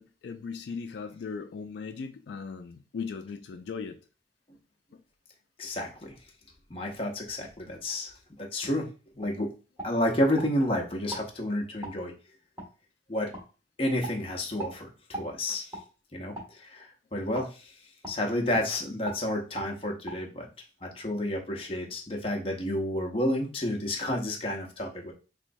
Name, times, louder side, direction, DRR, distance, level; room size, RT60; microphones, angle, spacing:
voice 1, 0.0-4.0 4.9-5.0, left 5 dB, 75° left, 6 dB, 0.3 m, -38 dB
voice 2, 5.6-6.1 6.7-8.1 8.4-8.9 9.1-9.5 9.8-12.1 13.1-13.3 13.8-15.7 16.1-17.7 18.1-20.5 20.8-25.1, left 1 dB, 30° left, 1 dB, 0.7 m, -30 dB
sound 1, 8.6-8.8 9.2-9.4 9.8-10.5 11.1-11.3 11.8-12.0 12.6-12.7 13.3-13.5 14.0-14.2 14.6-14.8 15.1-15.3 15.7-15.9 16.3-16.5 17.3-17.5 18.0-18.2 18.5-18.7 19.0-19.2 19.6-19.7 20.1-20.2, right 1 dB, 15° right, 1.3 m, -39 dB
3.2 x 3.0 x 2.6 m, 0.34 s
head